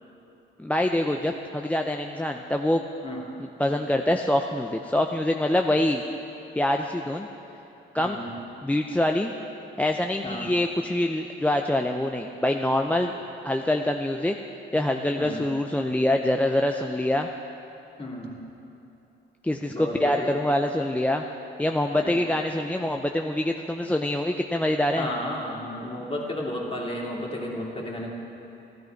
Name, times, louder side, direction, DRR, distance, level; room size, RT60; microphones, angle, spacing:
voice 1, 0.6-2.8 3.6-6.0 6.6-7.3 7.9-8.2 8.6-9.3 9.8-13.1 13.4-14.3 14.7-17.3 19.4-21.2 21.6-25.1, left 1 dB, 5° left, 3 dB, 0.5 m, -25 dB
voice 2, 8.0-8.4 10.2-10.5 15.2-15.4 18.0-18.4 19.7-20.3 21.9-22.4 25.0-28.1, left 1 dB, 30° left, -2 dB, 2.6 m, -33 dB
13.0 x 13.0 x 4.6 m, 3.0 s
cardioid pair, 90°, 20 cm